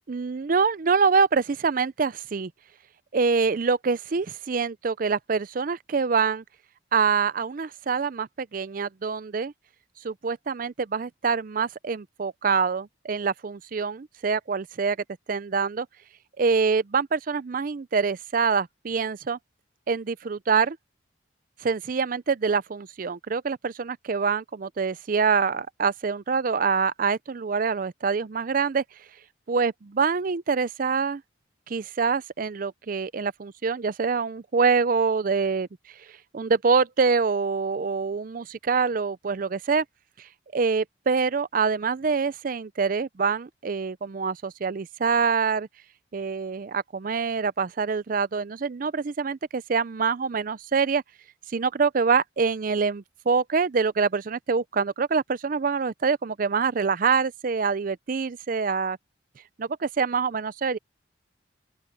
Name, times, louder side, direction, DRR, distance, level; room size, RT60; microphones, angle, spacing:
voice 1, 0.1-2.5 3.1-6.4 6.9-9.5 10.0-15.0 15.3-15.9 16.4-19.4 19.9-20.8 21.6-28.8 29.5-31.2 31.7-35.7 36.1-39.8 40.2-45.7 46.1-51.0 51.5-59.0 59.6-60.8, right 5 dB, 45° right, 0.5 m, -25 dB
open air
head